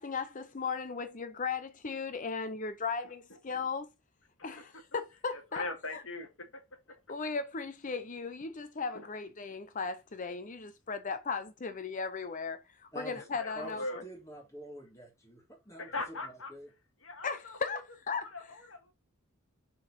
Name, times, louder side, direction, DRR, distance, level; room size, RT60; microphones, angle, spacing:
voice 1, 0.0-3.9 4.4-5.6 5.9-6.0 7.1-14.0 17.2-18.3, left 5 dB, 40° left, 0.7 m, -37 dB
voice 2, 4.4-5.0 5.3-6.6 6.9-7.0 8.9-9.1 13.1-14.0 15.8-16.5 17.0-17.7 18.1-18.9, left 2 dB, 70° left, 1.9 m, -41 dB
voice 3, 12.9-13.3 13.5-13.8 14.0-16.7, right 1 dB, 15° left, 3.4 m, -47 dB
6.5 x 4.6 x 4.3 m
head